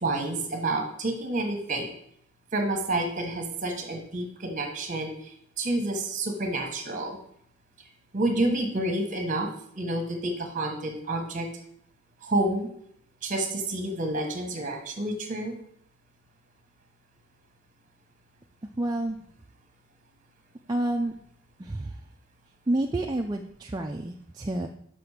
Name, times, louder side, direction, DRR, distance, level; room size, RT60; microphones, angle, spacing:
voice 1, 0.0-1.9 2.5-7.2 8.1-9.5 9.7-11.5 12.2-12.7 13.2-15.6, right 2 dB, 35° right, 4 dB, 1.3 m, -29 dB
voice 2, 18.8-19.2 20.7-21.1 21.6-21.9 22.7-24.7, right 1 dB, 20° right, 2 dB, 0.4 m, -29 dB
6.2 x 5.8 x 4.9 m, 0.67 s
head